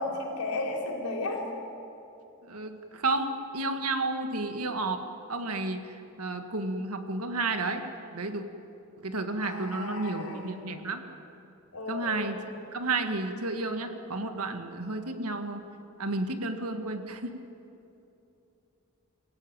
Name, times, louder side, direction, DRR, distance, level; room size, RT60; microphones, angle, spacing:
voice 1, 0.0-1.4 9.4-10.5 11.7-12.5, left 2 dB, 85° left, 1 dB, 4.3 m, -34 dB
voice 2, 2.5-8.4 9.0-11.0 11.9-12.4 12.7-15.7 16.0-17.4, right 2 dB, 85° right, 6 dB, 2.0 m, -32 dB
29.0 x 17.0 x 9.0 m, 2.9 s
head